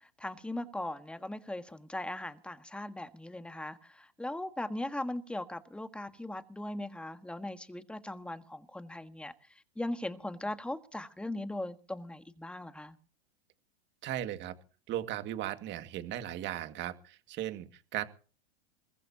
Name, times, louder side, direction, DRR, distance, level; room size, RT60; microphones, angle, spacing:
voice 1, 0.2-9.3 9.8-13.0, left 1 dB, 5° left, 1.6 m, -39 dB
voice 2, 14.0-14.5 14.9-18.0, right 12 dB, 40° right, 2.1 m, -37 dB
22.5 x 20.0 x 2.9 m
hypercardioid pair, 120°, 30 cm